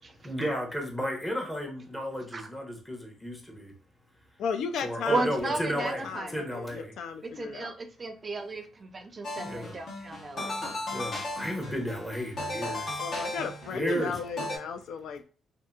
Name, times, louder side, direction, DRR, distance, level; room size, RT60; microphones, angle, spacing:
voice 1, 0.2-3.7 4.8-6.9 9.4-9.8 10.9-13.0 13.7-14.2, equal, 10° left, 0 dB, 0.8 m, -33 dB
voice 2, 4.4-7.7 13.0-15.2, left 6 dB, 75° left, 7 dB, 0.3 m, -35 dB
voice 3, 5.1-6.3 7.4-10.7, right 3 dB, 35° right, 6 dB, 0.4 m, -34 dB
sound 1, 9.2-14.6, left 1 dB, 55° left, 1.2 m, -36 dB
2.7 x 2.5 x 2.3 m, 0.38 s
cardioid pair, 90°, 0 cm